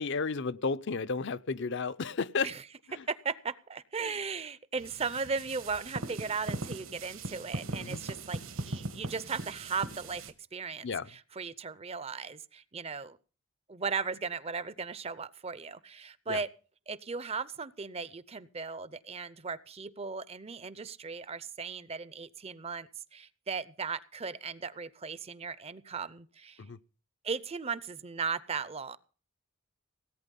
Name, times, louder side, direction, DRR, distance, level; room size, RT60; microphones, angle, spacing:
voice 1, 0.0-2.5 7.8-8.0 10.8-11.1 16.3-16.4 26.6-26.8, left 4 dB, 55° left, 14 dB, 0.6 m, -32 dB
voice 2, 3.1-10.2 10.5-13.2 13.7-16.5 16.9-26.6 27.2-29.0, right 5 dB, 30° right, 17 dB, 0.6 m, -37 dB
sound 1, 4.8-10.3, right 2 dB, 70° right, 1.5 m, -39 dB
18.0 x 8.9 x 5.3 m, 0.38 s
head